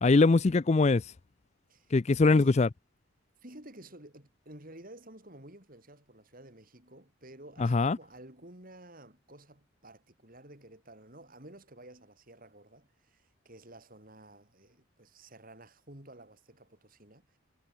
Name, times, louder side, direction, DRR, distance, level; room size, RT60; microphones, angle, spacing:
voice 1, 0.0-1.0 1.9-2.7 7.6-8.0, left 3 dB, 30° left, 0.4 m, -22 dB
voice 2, 2.3-2.6 3.4-17.4, right 1 dB, 40° right, 4.1 m, -52 dB
head